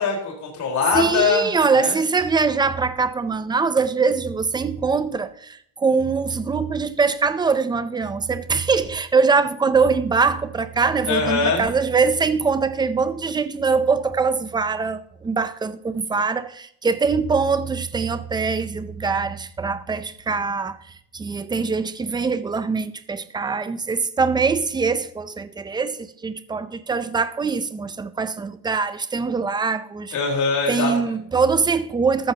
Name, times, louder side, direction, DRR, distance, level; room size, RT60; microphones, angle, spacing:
voice 1, 0.0-1.5 1.7-1.9 11.1-11.6 30.1-30.9, left 5 dB, 40° left, 4.2 m, -22 dB
voice 2, 0.9-20.8 21.1-30.1 30.7-32.3, right 5 dB, 10° right, 0.4 m, -22 dB
14.0 x 13.0 x 2.8 m
cardioid pair, 160°, 45 cm